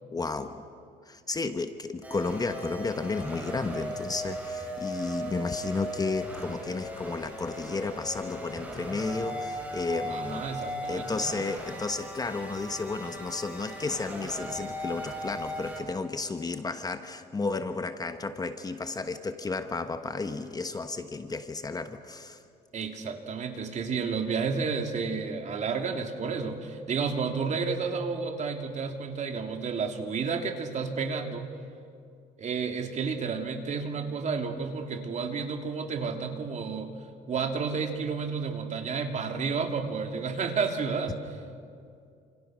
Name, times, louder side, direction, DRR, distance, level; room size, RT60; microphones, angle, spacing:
voice 1, 0.1-0.6 1.1-10.5 10.9-22.4, left 3 dB, 20° left, 8 dB, 1.2 m, -33 dB
sound 1, 2.0-15.8, equal, 10° right, 7.2 m, -38 dB
voice 2, 10.1-11.3 22.7-31.5 32.4-36.9 37.3-41.2, right 5 dB, 45° right, 4 dB, 2.8 m, -31 dB
29.0 x 27.5 x 6.3 m, 2.4 s
cardioid pair, 110°, 17 cm